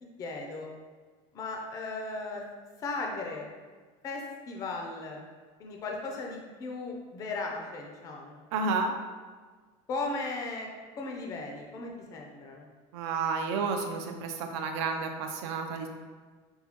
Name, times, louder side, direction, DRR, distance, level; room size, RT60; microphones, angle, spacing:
voice 1, 0.0-0.7 1.3-2.4 2.8-3.5 4.0-5.2 5.6-8.4 9.9-10.7 11.0-12.7, left 3 dB, 25° left, 1 dB, 0.4 m, -36 dB
voice 2, 8.5-8.9 12.9-15.9, right 4 dB, 75° right, 5 dB, 0.5 m, -31 dB
5.4 x 2.2 x 2.8 m, 1.5 s
cardioid pair, 170°, 15 cm